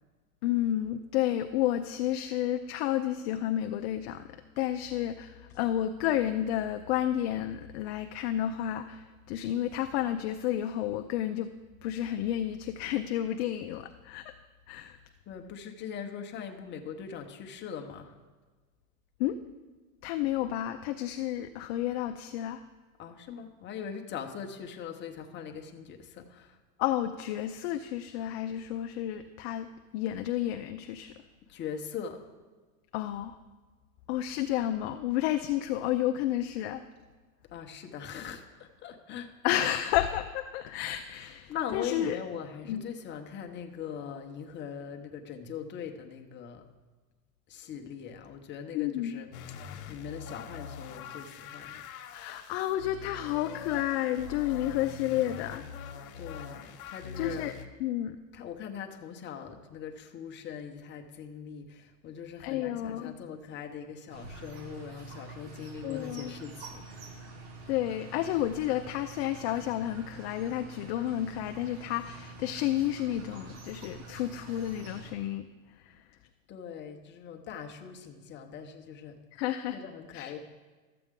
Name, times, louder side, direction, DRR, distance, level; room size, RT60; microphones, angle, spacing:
voice 1, 0.4-11.5 11.8-14.3 14.7-15.0 19.2-19.4 20.0-22.6 26.8-31.1 32.9-33.4 34.1-36.8 39.4-42.2 42.7-42.9 48.7-49.1 52.1-55.7 57.2-57.5 57.8-58.2 62.4-63.2 65.8-66.4 67.7-75.5 75.8-76.0 79.4-79.8 80.1-80.3, left 12 dB, 45° left, 7 dB, 0.4 m, -31 dB
voice 2, 15.3-18.2 23.0-26.6 31.5-32.2 37.5-39.3 41.5-46.6 47.5-49.3 49.9-51.8 56.1-57.5 58.3-67.0 76.5-79.2 79.7-80.4, left 7 dB, 25° left, 3 dB, 0.9 m, -41 dB
sound 1, 49.3-57.7, left 7 dB, 80° left, 1.1 m, -44 dB
sound 2, 64.1-75.1, right 3 dB, 50° right, 1.5 m, -47 dB
13.0 x 7.8 x 3.7 m, 1.3 s
supercardioid pair, 135°, 43 cm